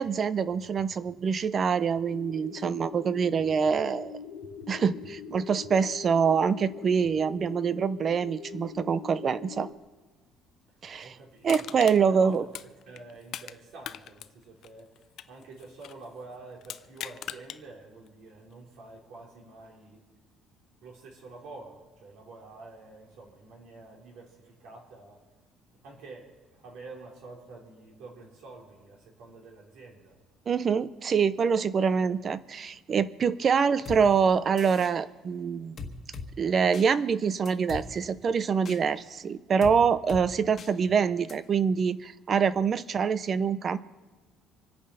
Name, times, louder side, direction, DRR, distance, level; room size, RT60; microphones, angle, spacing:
voice 1, 0.0-4.2 4.7-9.7 10.8-11.1 11.4-12.4 30.5-35.8 36.4-43.8, right 6 dB, 30° right, 16 dB, 0.5 m, -25 dB
sound 1, 2.1-9.7, left 7 dB, 85° left, 1.3 m, -42 dB
voice 2, 11.0-11.6 12.1-12.4 12.9-14.9 15.3-20.0 20.8-25.2 25.8-30.2, right 3 dB, 65° right, -1 dB, 4.0 m, -48 dB
Crushing, 11.5-13.6 13.8-16.0 16.6-17.6 18.1-18.2, left 11 dB, 50° left, 0.4 m, -40 dB
sound 2, 33.9-34.0 34.6-34.9 35.8-36.3 36.7-36.9 37.5-37.8 38.7-38.8 39.6-39.8 40.1-40.2 40.6-40.7 41.3-41.4, left 5 dB, 30° left, 1.6 m, -39 dB
26.0 x 8.7 x 5.7 m, 1.3 s
cardioid pair, 170°, 0 cm